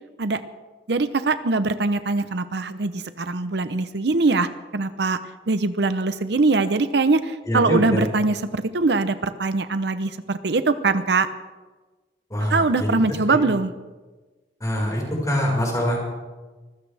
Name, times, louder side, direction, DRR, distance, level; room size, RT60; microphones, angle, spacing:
voice 1, 0.9-4.5 4.7-5.2 5.5-11.3 12.5-13.7, right 3 dB, 65° right, 11 dB, 0.7 m, -22 dB
voice 2, 7.4-8.1 12.3-13.4 14.6-16.0, equal, 20° left, -2 dB, 5.0 m, -24 dB
25.0 x 15.0 x 3.4 m, 1.3 s
head